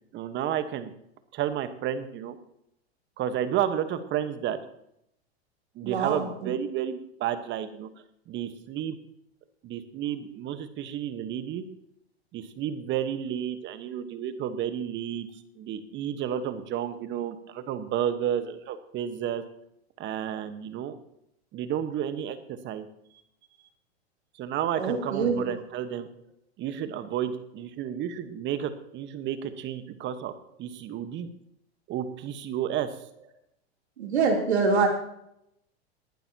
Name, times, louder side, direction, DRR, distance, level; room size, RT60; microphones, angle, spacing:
voice 1, 0.1-0.9 1.3-2.4 3.2-4.6 5.7-7.9 8.3-9.0 9.6-11.6 12.3-15.3 15.6-19.4 20.0-21.0 21.5-22.9 24.4-26.1 26.6-30.3 30.6-31.3 31.9-32.9, right 10 dB, 35° right, 11 dB, 1.3 m, -31 dB
voice 2, 5.8-6.5 24.8-25.4 34.0-34.9, right 4 dB, 80° right, 1 dB, 3.2 m, -25 dB
19.0 x 11.5 x 2.9 m, 0.75 s
hypercardioid pair, 105°, 32 cm